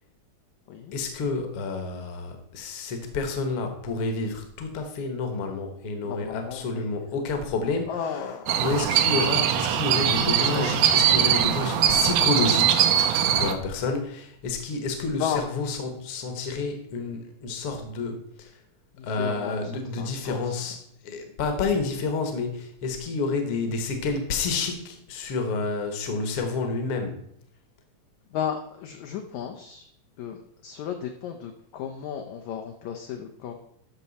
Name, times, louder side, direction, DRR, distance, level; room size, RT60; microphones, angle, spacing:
voice 1, 0.9-12.9 13.4-18.6 19.0-20.8 21.0-27.2, left 3 dB, 55° left, 6 dB, 1.6 m, -29 dB
voice 2, 6.0-6.9 7.9-8.6 10.3-11.0 15.2-15.4 19.0-19.7 20.0-20.6 28.3-29.9 30.2-33.5, left 8 dB, 80° left, 4 dB, 1.7 m, -34 dB
sound 1, 8.5-13.5, right 9 dB, 75° right, 2.0 m, -21 dB
13.0 x 5.8 x 4.1 m, 0.71 s
omnidirectional pair, 4.1 m